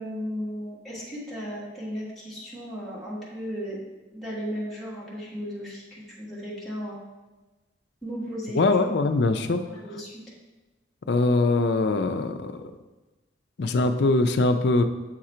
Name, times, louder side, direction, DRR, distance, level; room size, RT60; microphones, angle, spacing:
voice 1, 0.0-3.9 4.1-7.0 8.0-8.6 9.6-10.1, equal, ahead, -8 dB, 1.4 m, -35 dB
voice 2, 8.5-9.6 11.1-12.6 13.6-14.8, left 2 dB, 65° left, 7 dB, 0.5 m, -22 dB
7.4 x 3.8 x 4.3 m, 1.2 s
head